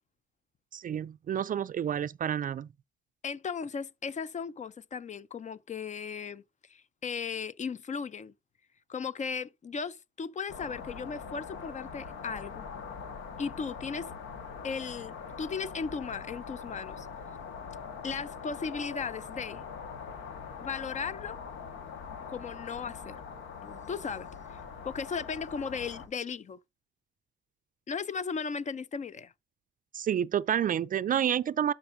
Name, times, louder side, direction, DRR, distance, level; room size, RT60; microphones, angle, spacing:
voice 1, 0.7-2.7 29.9-31.7, right 9 dB, 45° right, 0.4 m, -29 dB
voice 2, 3.2-6.4 6.7-8.3 8.9-12.7 13.4-14.1 14.6-17.1 18.0-19.6 20.6-21.4 22.3-23.2 23.6-24.6 24.8-26.6 27.9-29.3, left 5 dB, 35° left, 0.5 m, -36 dB
sound 1, 10.5-26.1, left 6 dB, 80° left, 1.6 m, -43 dB
12.0 x 5.2 x 2.7 m
cardioid pair, 90°, 20 cm